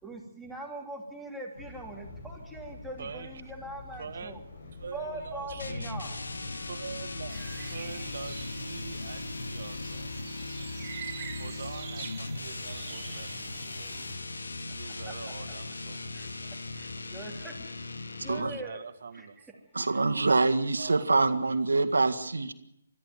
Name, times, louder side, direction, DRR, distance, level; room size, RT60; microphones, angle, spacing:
voice 1, 0.0-4.4 4.9-6.1 16.1-16.3 16.7-17.7 18.2-18.8 19.1-19.3, right 1 dB, ahead, -1 dB, 2.9 m, -41 dB
sound 1, 1.5-10.2, left 3 dB, 55° left, 5.1 m, -47 dB
voice 2, 3.0-3.4 4.0-4.3 4.7-5.9 6.7-10.1 11.4-16.5 17.1-17.6 18.4-19.6 20.8-22.0, right 5 dB, 60° right, 10 dB, 1.9 m, -45 dB
sound 2, 5.6-18.7, left 2 dB, 85° left, 1.9 m, -38 dB
sound 3, 7.3-14.1, right 8 dB, 30° right, 2.7 m, -45 dB
voice 3, 19.7-22.5, right 3 dB, 85° right, 8 dB, 1.8 m, -25 dB
21.5 x 13.5 x 9.3 m, 0.78 s
hypercardioid pair, 150°, 0 cm